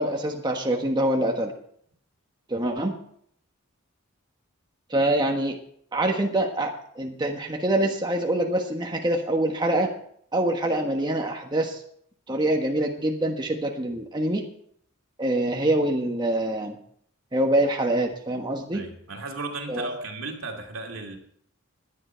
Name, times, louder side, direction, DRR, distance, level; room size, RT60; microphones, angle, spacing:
voice 1, 0.0-1.5 2.5-2.9 4.9-5.6 5.9-6.7 7.0-9.9 10.3-11.8 12.3-14.4 15.2-16.8 17.3-18.8 19.7-20.0, right 1 dB, 20° right, 2 dB, 1.3 m, -25 dB
voice 2, 18.7-21.2, right 3 dB, 70° right, 2 dB, 2.5 m, -36 dB
17.0 x 11.0 x 4.5 m, 0.66 s
head